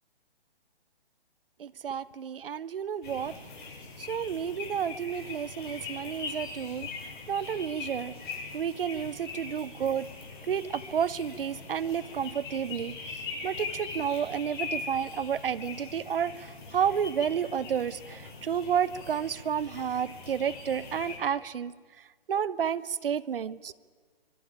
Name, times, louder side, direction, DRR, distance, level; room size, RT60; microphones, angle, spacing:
voice 1, 1.6-3.3 4.0-6.9 7.3-8.1 8.5-10.1 10.5-13.0 13.4-21.7 22.3-23.7, right 8 dB, 60° right, 19 dB, 1.1 m, -31 dB
sound 1, 3.0-21.2, left 4 dB, 50° left, 7.8 m, -41 dB
25.0 x 22.5 x 10.0 m, 1.5 s
hypercardioid pair, 140°, 31 cm